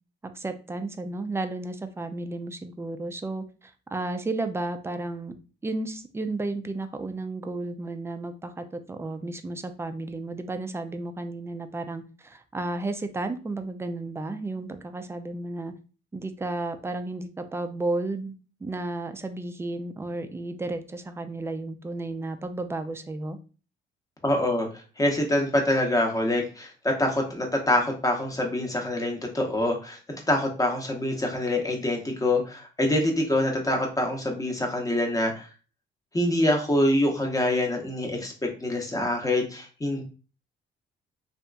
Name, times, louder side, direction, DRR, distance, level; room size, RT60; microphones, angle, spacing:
voice 1, 0.2-5.3 5.6-15.7 16.1-18.3 18.6-23.4, right 2 dB, 15° right, 8 dB, 0.3 m, -33 dB
voice 2, 24.2-24.7 25.0-30.0 30.3-35.5 36.1-38.3 38.6-40.0, left 1 dB, 15° left, 2 dB, 0.8 m, -25 dB
2.8 x 2.4 x 2.2 m, 0.35 s
cardioid pair, 90°, 20 cm